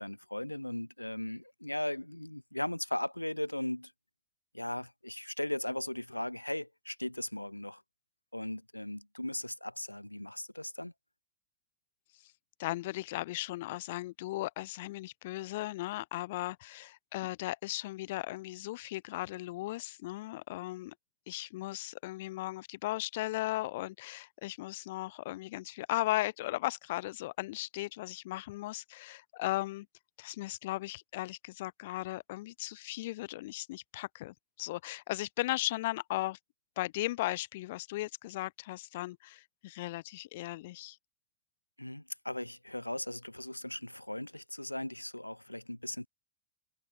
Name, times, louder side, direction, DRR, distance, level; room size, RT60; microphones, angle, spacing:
voice 1, 0.0-3.9 4.5-7.8 8.3-10.9 41.8-46.1, left 1 dB, 85° left, 0.7 m, -37 dB
voice 2, 12.6-20.9 21.3-29.9 30.2-36.4 36.8-41.0, left 18 dB, 55° left, 0.3 m, -37 dB
figure-of-eight pair, 90°, 0 cm